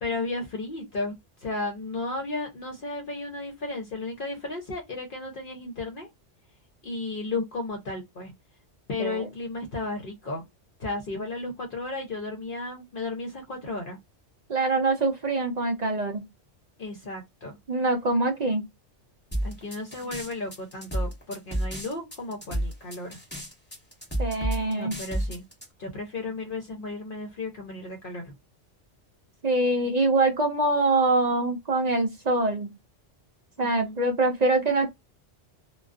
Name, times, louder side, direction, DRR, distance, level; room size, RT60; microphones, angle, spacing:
voice 1, 0.0-6.1 6.8-8.3 8.9-10.4 10.8-14.0 16.8-17.6 19.4-23.2 24.7-25.4 25.8-28.3 33.6-34.0, left 2 dB, 55° left, 0.8 m, -34 dB
voice 2, 14.5-16.2 17.7-18.7 24.2-25.0 29.4-32.7 33.6-34.9, right 2 dB, 50° right, 0.5 m, -24 dB
sound 1, 19.3-25.7, right 1 dB, 10° left, 0.9 m, -31 dB
2.3 x 2.2 x 2.3 m
omnidirectional pair, 1.2 m